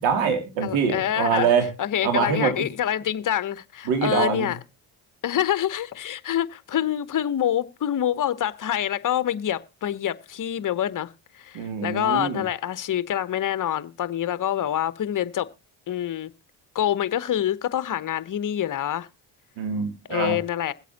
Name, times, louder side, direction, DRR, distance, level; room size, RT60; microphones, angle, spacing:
voice 1, 0.0-1.7 2.0-2.5 3.9-4.5 11.5-12.4 19.6-20.4, right 6 dB, 85° right, 2.8 m, -24 dB
voice 2, 0.6-1.5 1.8-4.6 5.2-15.5 15.9-16.3 16.7-19.1 20.1-20.7, left 11 dB, 45° left, 0.9 m, -26 dB
22.0 x 8.2 x 2.8 m
supercardioid pair, 70°, 45 cm